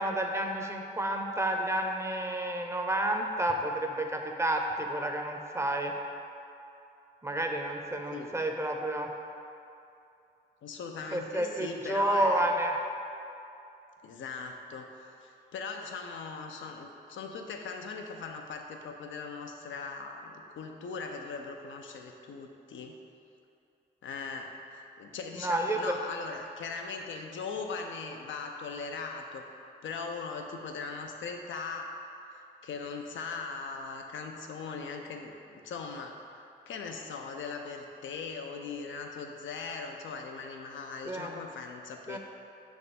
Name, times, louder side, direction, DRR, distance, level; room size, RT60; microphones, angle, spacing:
voice 1, 0.0-5.9 7.2-9.1 11.1-12.8 25.3-26.0 41.1-41.3 42.1-42.2, right 1 dB, 15° right, 3 dB, 0.7 m, -30 dB
voice 2, 10.6-12.5 14.0-23.0 24.0-24.5 25.0-29.4 29.8-32.0 32.6-36.2 36.7-42.2, left 4 dB, 80° left, 3 dB, 0.6 m, -39 dB
6.4 x 3.4 x 4.2 m, 2.7 s
supercardioid pair, 50°, 20 cm